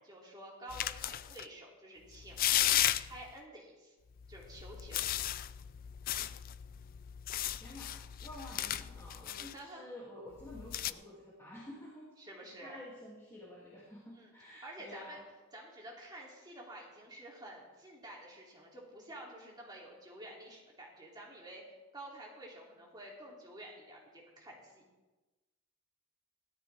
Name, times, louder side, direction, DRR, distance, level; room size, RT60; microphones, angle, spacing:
voice 1, 0.0-4.0 4.3-5.1 9.4-9.9 12.2-12.8 14.1-15.2 15.5-21.6 21.9-24.8, right 1 dB, 20° right, -3 dB, 2.9 m, -50 dB
sound 1, 0.7-1.4 2.1-3.3 4.2-9.5 10.4-10.9, left 12 dB, 40° left, 0.3 m, -35 dB
voice 2, 7.5-12.1 12.6-15.2, left 1 dB, 15° left, -7 dB, 2.6 m, -50 dB
17.5 x 13.0 x 3.5 m, 1.2 s
head